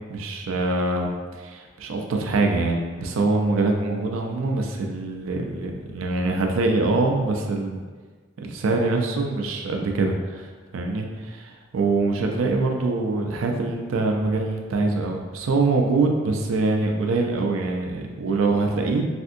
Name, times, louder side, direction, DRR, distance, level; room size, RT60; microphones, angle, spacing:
voice 1, 0.1-7.8 8.4-10.5 10.7-19.0, right 3 dB, 85° right, 2 dB, 0.4 m, -24 dB
3.4 x 2.6 x 2.6 m, 1.5 s
head